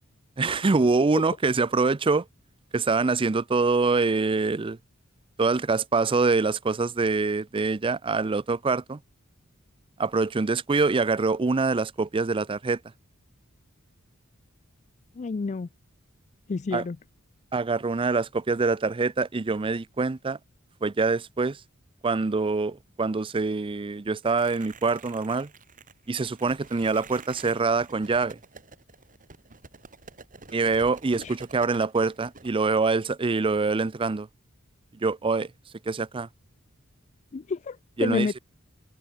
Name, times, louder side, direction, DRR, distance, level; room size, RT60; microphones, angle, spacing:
voice 1, 0.4-2.2 2.7-4.8 5.4-9.0 10.0-12.8 16.7-16.8 17.5-20.4 20.8-21.6 22.0-25.5 26.1-28.4 30.5-34.3 35.0-35.5 35.9-36.3 38.0-38.4, right 4 dB, 25° right, 0.5 m, -25 dB
voice 2, 15.2-15.7 16.5-17.0 31.2-31.3 37.3-38.4, left 4 dB, 35° left, 0.4 m, -29 dB
sound 1, 24.3-32.5, right 4 dB, 40° right, 3.2 m, -48 dB
head